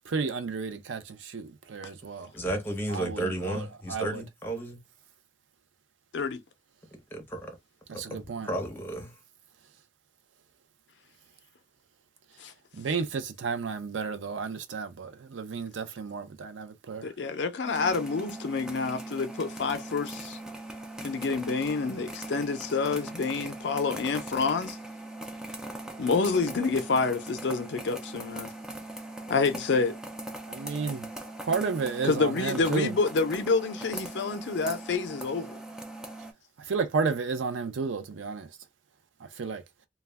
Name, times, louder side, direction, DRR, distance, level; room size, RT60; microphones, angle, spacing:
voice 1, 0.1-2.3 2.9-4.2 7.9-8.5 12.8-17.1 30.5-31.1 31.4-32.9 36.7-38.5 39.4-39.6, right 5 dB, 90° right, 0.5 m, -32 dB
voice 2, 2.3-4.8 7.1-7.6 8.1-9.1, right 1 dB, 10° left, 0.7 m, -33 dB
voice 3, 17.0-20.4 21.0-24.8 26.0-28.5 29.3-30.0 32.0-35.6, left 4 dB, 70° left, 0.4 m, -28 dB
sound 1, 17.6-36.3, right 1 dB, 5° right, 0.3 m, -40 dB
2.3 x 2.1 x 3.3 m
head